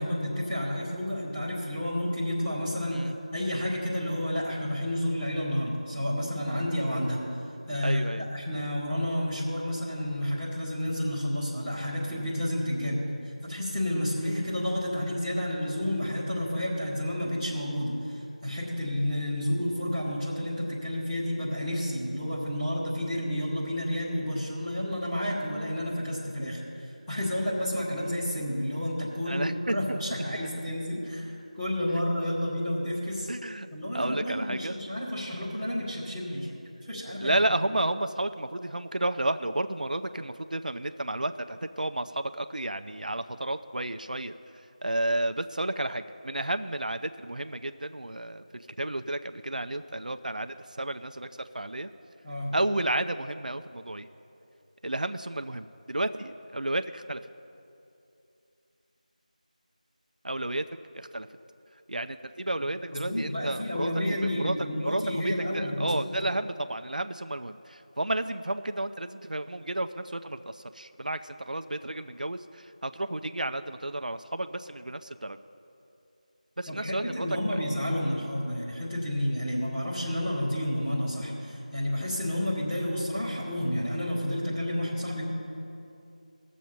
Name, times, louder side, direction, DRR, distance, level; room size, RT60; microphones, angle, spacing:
voice 1, 0.0-7.2 7.7-18.1 18.4-26.6 27.1-33.3 33.7-36.5 36.8-37.4 52.2-52.5 62.9-66.1 76.7-85.2, left 1 dB, 5° left, -12 dB, 1.7 m, -30 dB
voice 2, 7.8-8.3 29.3-30.0 33.3-33.7 33.9-34.7 37.2-44.3 44.8-51.3 51.5-51.9 52.5-54.1 54.8-57.2 60.2-60.7 60.9-61.3 61.9-75.4 76.6-77.6, right 1 dB, 75° right, 9 dB, 0.5 m, -32 dB
19.0 x 7.2 x 4.4 m, 2.7 s
figure-of-eight pair, 175°, 4 cm